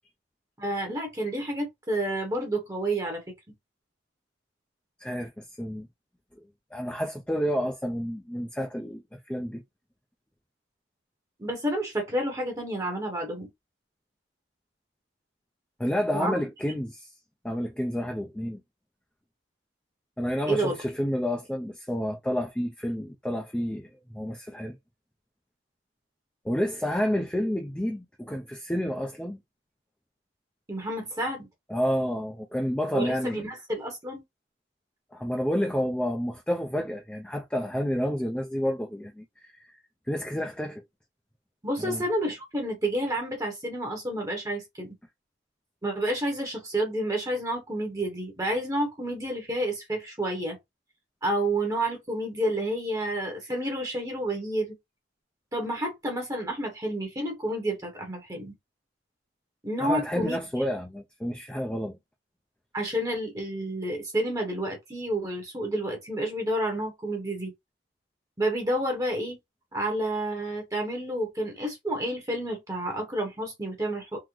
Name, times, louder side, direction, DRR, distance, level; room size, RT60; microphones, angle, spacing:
voice 1, 0.6-3.2 11.4-13.5 16.1-16.4 20.5-20.8 30.7-31.5 32.9-34.2 41.6-44.9 45.8-50.6 51.2-54.7 55.5-58.5 59.6-60.6 62.7-67.5 68.4-69.4 69.7-74.2, right 1 dB, 20° right, 0.9 m, -30 dB
voice 2, 5.0-5.9 6.7-9.6 15.8-17.1 17.4-18.6 20.2-23.9 24.1-24.8 26.4-29.4 31.7-33.5 35.1-39.6 40.1-40.8 41.8-42.0 59.8-62.0, equal, 5° left, 0.4 m, -30 dB
3.7 x 2.0 x 3.0 m
head